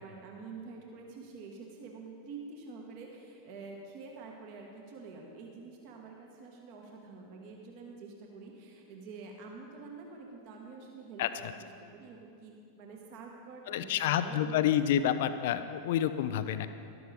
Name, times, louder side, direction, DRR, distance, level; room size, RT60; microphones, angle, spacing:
voice 1, 0.0-11.5 11.8-14.9, right 4 dB, 45° right, 0 dB, 1.4 m, -47 dB
voice 2, 13.7-16.7, left 10 dB, 55° left, 12 dB, 0.4 m, -28 dB
13.0 x 12.5 x 3.4 m, 2.5 s
figure-of-eight pair, 90°, 0 cm